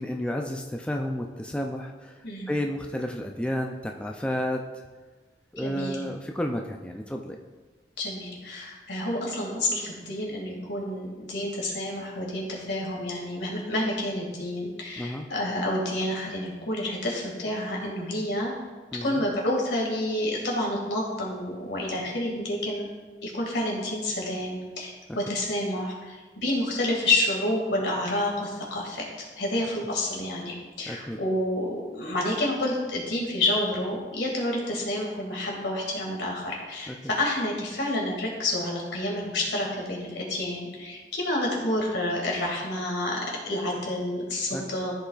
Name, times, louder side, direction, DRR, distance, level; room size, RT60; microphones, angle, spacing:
voice 1, 0.0-2.1 2.5-4.6 5.5-7.4 15.0-15.2 18.9-19.2 30.9-31.2 36.9-37.0 44.5-44.6, left 1 dB, 5° left, 2 dB, 0.4 m, -31 dB
voice 2, 5.6-6.0 8.0-18.5 19.0-22.9 23.2-29.1 29.4-44.9, left 1 dB, 80° left, -1 dB, 2.1 m, -29 dB
14.0 x 5.6 x 2.4 m, 1.3 s
head